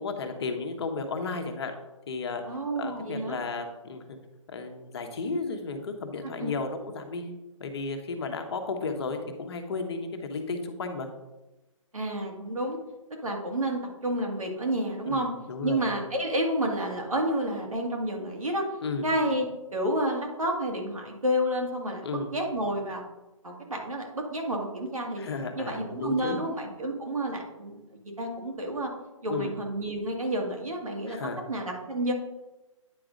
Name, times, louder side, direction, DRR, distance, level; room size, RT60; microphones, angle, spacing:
voice 1, 0.0-1.7 2.1-2.4 2.8-4.2 4.5-7.3 7.6-11.1 15.0-15.9 18.8-19.1 22.0-22.3 25.2-26.4 29.3-29.5 31.1-31.4, left 4 dB, 50° left, 5 dB, 1.2 m, -33 dB
voice 2, 2.5-3.4 6.4-6.5 11.9-12.8 13.2-15.3 15.6-18.6 19.0-19.5 19.7-22.0 22.3-23.0 23.4-25.2 25.6-28.9 29.2-31.2 31.5-32.1, right 1 dB, 90° right, 0 dB, 2.0 m, -30 dB
9.4 x 4.9 x 3.9 m, 1.0 s
figure-of-eight pair, 145°, 17 cm